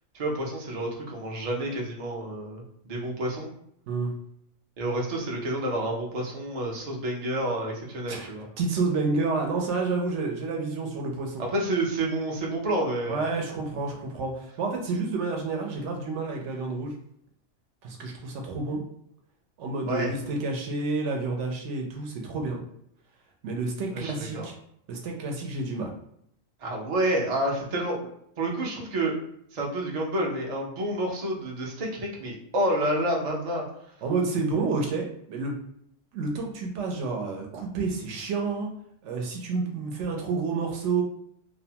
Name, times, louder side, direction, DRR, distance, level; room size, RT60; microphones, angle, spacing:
voice 1, 0.1-3.5 4.8-8.5 11.5-13.2 19.9-20.1 23.9-24.5 26.6-28.0 28.4-29.1 29.5-33.6, right 1 dB, 50° right, -2 dB, 0.4 m, -29 dB
voice 2, 8.6-11.4 13.1-16.9 17.8-18.8 19.6-22.6 23.4-24.5 24.9-25.9 34.0-35.6 36.1-38.7 39.0-41.0, right 3 dB, 70° right, 1 dB, 0.9 m, -29 dB
2.6 x 2.2 x 2.7 m, 0.72 s
omnidirectional pair, 1.4 m